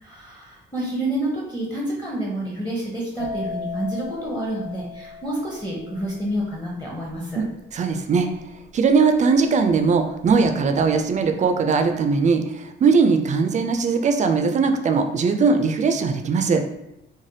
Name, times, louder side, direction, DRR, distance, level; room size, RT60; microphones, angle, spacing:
voice 1, 0.0-7.4, right 1 dB, 10° left, -5 dB, 0.7 m, -28 dB
sound 1, 3.2-10.8 11.0-11.5, left 4 dB, 85° left, 0.7 m, -37 dB
voice 2, 7.7-8.3 8.7-16.6, right 5 dB, 40° right, 7 dB, 0.4 m, -20 dB
3.2 x 2.2 x 2.7 m, 0.86 s
cardioid pair, 90°, 20 cm